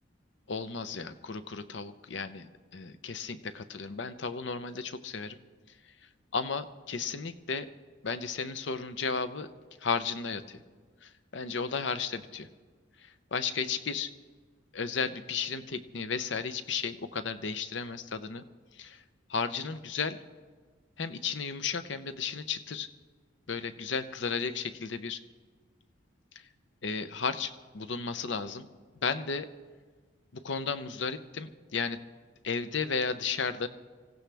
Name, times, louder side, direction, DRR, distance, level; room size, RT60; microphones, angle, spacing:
voice 1, 0.5-2.5 2.7-5.4 6.3-7.7 8.0-9.5 9.8-10.6 11.0-12.5 13.0-14.1 14.7-18.4 18.7-19.0 19.3-20.2 21.0-22.9 23.5-25.2 26.8-28.7 29.0-29.5 30.3-32.0 32.4-33.7, left 5 dB, 65° left, 11 dB, 0.7 m, -34 dB
25.0 x 15.5 x 3.4 m, 1.5 s
head